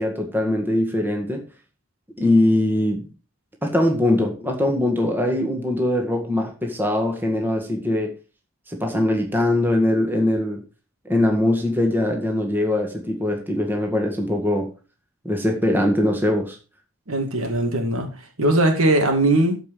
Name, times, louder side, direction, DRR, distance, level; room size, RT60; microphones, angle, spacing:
voice 1, 0.0-1.4 2.2-3.0 3.6-8.1 8.7-10.6 11.1-14.7 15.2-16.6, left 1 dB, 10° right, 1.8 m, -21 dB
voice 2, 17.1-18.1 18.4-19.6, right 1 dB, 80° right, 2.5 m, -19 dB
13.5 x 5.4 x 4.9 m
head